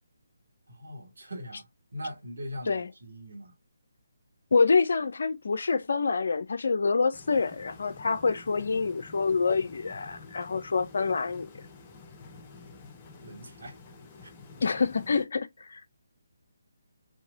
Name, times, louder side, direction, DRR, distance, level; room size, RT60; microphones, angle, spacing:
voice 1, 0.7-3.5 13.2-13.8 14.1-14.3, equal, 65° right, 1.7 m, -41 dB
voice 2, 4.5-11.5 14.6-15.8, left 4 dB, 60° left, 0.6 m, -26 dB
sound 1, 7.1-15.2, left 4 dB, 25° left, 0.8 m, -49 dB
4.0 x 2.8 x 2.4 m
figure-of-eight pair, 145°, 0 cm